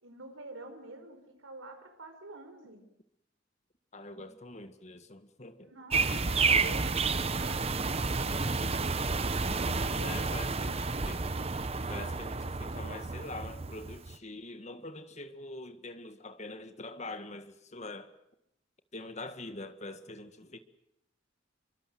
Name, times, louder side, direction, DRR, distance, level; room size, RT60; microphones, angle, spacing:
voice 1, 0.0-2.8 4.1-4.2 5.6-6.9 7.4-9.5 9.9-10.9, right 2 dB, 90° right, 4.6 m, -49 dB
voice 2, 3.9-5.7 6.1-6.2 6.5-6.8 9.7-11.2 11.9-18.1 18.9-20.6, left 2 dB, 35° left, 1.7 m, -44 dB
sound 1, 5.9-14.1, right 4 dB, 30° right, 0.9 m, -30 dB
26.0 x 24.0 x 7.9 m
head